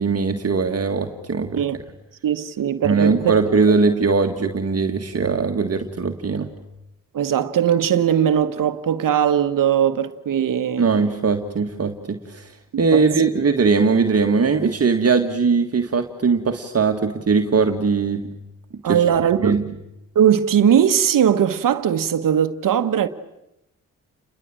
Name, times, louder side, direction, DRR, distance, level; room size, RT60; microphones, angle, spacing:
voice 1, 0.0-1.6 2.8-6.5 10.8-12.5 12.8-18.2 18.9-19.0 19.4-19.6, right 4 dB, 45° right, 1.8 m, -20 dB
voice 2, 2.2-3.3 7.1-10.9 12.7-13.0 18.8-19.6 20.1-23.1, right 9 dB, 70° right, 1.4 m, -19 dB
29.5 x 21.5 x 8.9 m
supercardioid pair, 55°, 34 cm